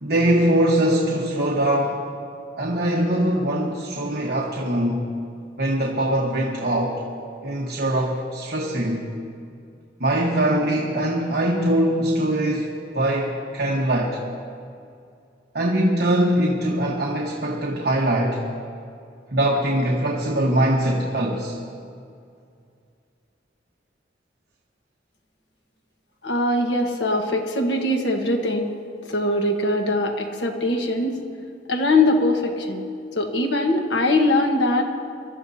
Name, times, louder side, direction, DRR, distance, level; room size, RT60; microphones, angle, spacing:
voice 1, 0.0-2.1 2.6-5.1 5.6-7.1 7.4-9.0 10.0-14.2 15.5-18.4 19.3-21.6, right 1 dB, 55° right, -2 dB, 1.3 m, -22 dB
voice 2, 26.2-28.7 29.1-31.2 31.7-32.8 33.1-34.8, left 2 dB, 75° left, 3 dB, 1.4 m, -21 dB
26.0 x 13.0 x 2.8 m, 2.4 s
head